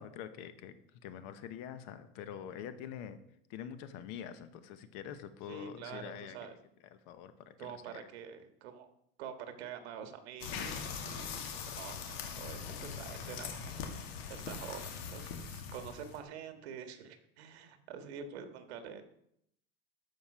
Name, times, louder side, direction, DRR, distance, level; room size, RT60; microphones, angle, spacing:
voice 1, 0.0-3.2 3.5-6.4 6.9-8.1, left 9 dB, 50° left, 11 dB, 1.0 m, -45 dB
voice 2, 5.5-6.5 7.6-8.9 9.2-19.0, right 7 dB, 75° right, 7 dB, 1.6 m, -47 dB
sound 1, 10.4-16.2, left 6 dB, 70° left, 2.2 m, -41 dB
13.5 x 5.2 x 6.2 m, 0.75 s
supercardioid pair, 160°, 32 cm